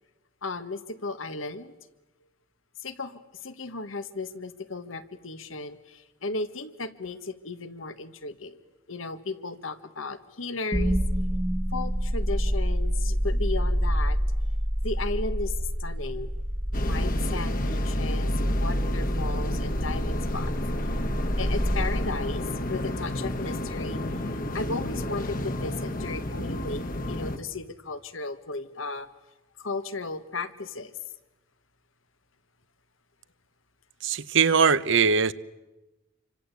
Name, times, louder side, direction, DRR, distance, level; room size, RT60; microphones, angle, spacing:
voice 1, 0.4-1.7 2.8-8.6 8.9-11.0 11.7-14.2 14.8-15.5 15.8-16.3 16.9-20.5 21.4-24.0 24.5-29.1 29.6-31.0, left 3 dB, 75° left, 1.7 m, -35 dB
sound 1, 10.7-22.8, equal, 15° right, 1.5 m, -27 dB
sound 2, 16.7-27.4, left 1 dB, 45° left, 1.7 m, -32 dB
voice 2, 34.0-35.3, right 6 dB, 65° right, 0.9 m, -21 dB
28.0 x 25.0 x 8.4 m
head